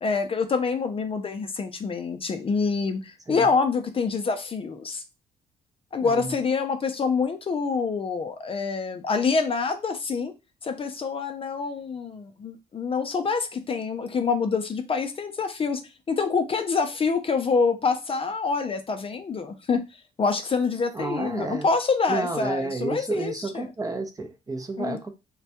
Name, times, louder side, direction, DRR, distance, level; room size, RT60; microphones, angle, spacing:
voice 1, 0.0-5.0 5.9-10.3 10.6-15.8 16.1-19.8 20.2-23.7 24.8-25.1, left 4 dB, 35° left, 0.4 m, -26 dB
voice 2, 6.0-6.4 20.9-21.7 22.1-25.1, right 3 dB, 20° right, 0.5 m, -31 dB
2.2 x 2.2 x 2.8 m
supercardioid pair, 70°, 17 cm